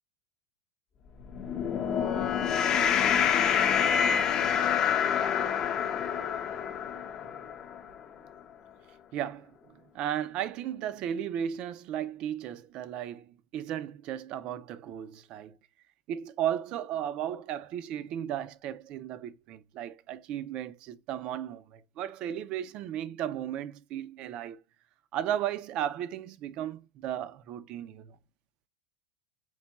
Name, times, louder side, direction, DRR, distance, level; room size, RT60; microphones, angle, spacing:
sound 1, 1.2-7.8, left 8 dB, 20° left, 0.5 m, -27 dB
voice 1, 9.1-9.5 9.9-15.6 16.1-24.6 25.1-28.2, right 10 dB, 30° right, 0.4 m, -35 dB
4.6 x 2.2 x 4.0 m
supercardioid pair, 175°, 3 cm